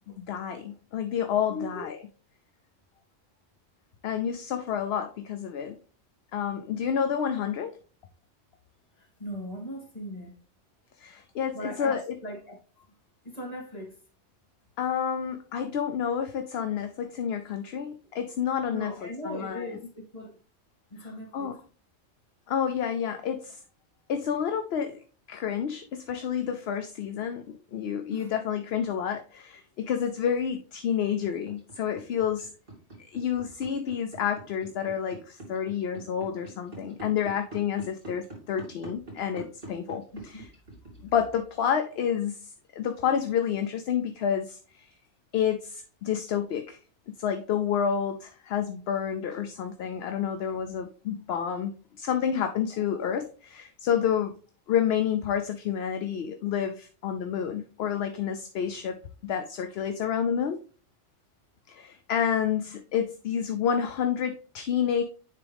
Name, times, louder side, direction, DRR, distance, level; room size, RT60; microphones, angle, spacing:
voice 1, 0.2-2.0 4.0-5.8 6.3-7.8 11.0-12.2 14.8-19.7 21.0-21.6 22.5-23.6 24.1-32.5 33.0-40.5 41.0-44.9 45.3-46.8 47.1-54.3 54.7-60.6 61.7-65.0, left 8 dB, 65° left, 0.8 m, -29 dB
voice 2, 1.5-1.9 9.0-10.3 11.5-12.6 13.2-13.9 18.7-20.4 20.9-21.5 28.1-28.3 40.1-40.4, left 1 dB, 35° left, 2.3 m, -39 dB
sound 1, 31.2-41.3, right 2 dB, 50° right, 2.9 m, -43 dB
9.8 x 3.6 x 3.4 m
omnidirectional pair, 1.2 m